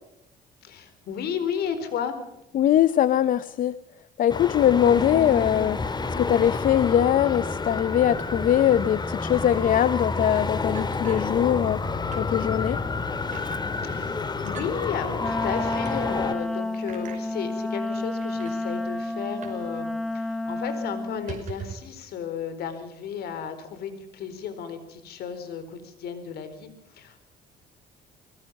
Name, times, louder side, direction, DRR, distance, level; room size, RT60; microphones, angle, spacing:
voice 1, 0.6-2.2 13.8-27.2, left 7 dB, 70° left, 10 dB, 4.3 m, -33 dB
voice 2, 2.5-3.7 4.2-5.8 6.2-11.8 12.2-12.8, left 10 dB, 55° left, 16 dB, 0.7 m, -21 dB
Traffic noise roadway noise, 4.3-16.3, left 3 dB, 25° left, 2.1 m, -29 dB
sound 1, 10.7-11.8 12.1-12.3 12.7-12.8 13.3-13.6 14.5-14.7 15.7-15.9 16.9-17.2 18.0-18.1 18.3-18.6 19.4-19.7 19.9-20.0 20.4-20.6 21.1-21.9, right 7 dB, 45° right, 5.5 m, -41 dB
Wind instrument woodwind instrument, 15.2-21.3, left 2 dB, ahead, 1.7 m, -30 dB
26.5 x 20.5 x 5.4 m, 0.84 s
cardioid pair, 110°, 17 cm